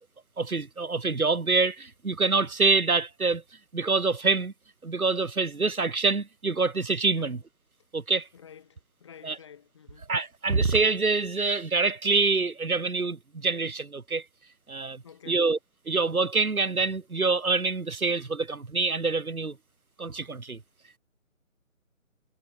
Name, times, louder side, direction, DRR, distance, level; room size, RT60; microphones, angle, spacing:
voice 1, 0.4-3.4 3.7-4.5 4.8-7.4 7.9-8.3 9.2-9.4 10.1-14.2 14.7-15.6 15.9-19.6 20.0-20.6, right 4 dB, 90° right, 4.0 m, -26 dB
voice 2, 8.3-10.1 15.0-15.5, left 8 dB, 20° left, 5.7 m, -50 dB
hypercardioid pair, 175°, 42 cm